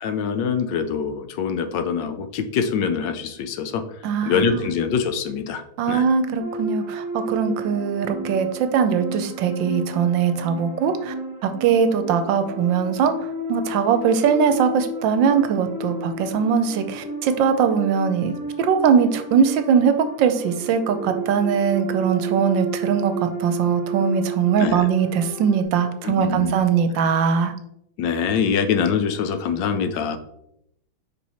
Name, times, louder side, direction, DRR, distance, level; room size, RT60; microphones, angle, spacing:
voice 1, 0.0-3.8 4.2-6.0 24.6-24.9 26.0-26.5 27.0-27.1 28.0-30.2, left 6 dB, 75° left, 9 dB, 1.3 m, -24 dB
voice 2, 4.0-4.7 5.8-11.1 11.4-13.1 13.5-27.5, right 7 dB, 75° right, 8 dB, 1.4 m, -21 dB
sound 1, 6.4-25.6, right 2 dB, 10° right, 1.0 m, -32 dB
5.4 x 4.6 x 4.2 m, 0.76 s
omnidirectional pair, 2.1 m